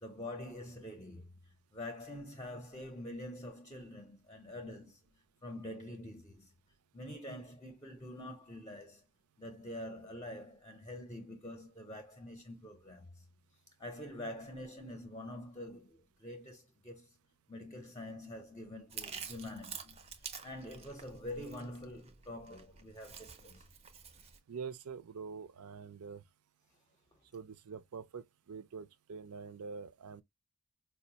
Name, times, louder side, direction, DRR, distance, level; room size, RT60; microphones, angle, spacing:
voice 1, 0.0-6.5 6.9-9.0 9.4-13.2 13.8-17.2 17.5-23.6 27.1-27.2, left 1 dB, 15° left, 0.6 m, -46 dB
Chewing mastication, 18.9-24.4, right 7 dB, 25° right, 0.5 m, -48 dB
voice 2, 24.5-26.2 27.3-30.2, right 5 dB, 85° right, 0.5 m, -45 dB
4.6 x 2.1 x 2.7 m
head